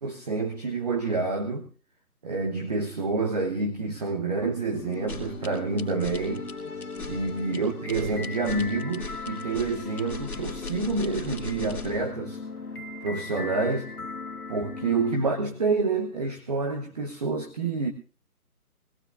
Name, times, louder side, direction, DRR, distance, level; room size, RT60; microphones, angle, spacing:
voice 1, 0.0-1.7 2.2-6.5 7.1-12.4 13.0-13.9 14.5-17.9, right 3 dB, 30° right, 3 dB, 0.9 m, -28 dB
sound 1, 4.7-15.2, left 4 dB, 75° left, 1.7 m, -38 dB
sound 2, 4.9-12.0, left 3 dB, 5° left, 1.5 m, -39 dB
20.0 x 17.0 x 2.6 m, 0.35 s
figure-of-eight pair, 150°, 45 cm